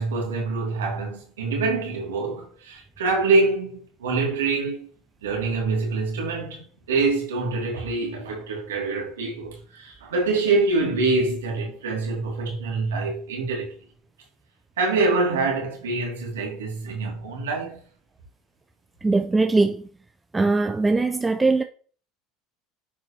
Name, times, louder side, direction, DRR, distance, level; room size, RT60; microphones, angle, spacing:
voice 1, 0.0-4.9 5.2-13.7 14.8-17.8, right 3 dB, 90° right, 2.3 m, -25 dB
voice 2, 19.0-19.8 20.3-21.6, right 3 dB, 15° right, 0.5 m, -21 dB
9.6 x 4.8 x 2.8 m
hypercardioid pair, 85°, 0 cm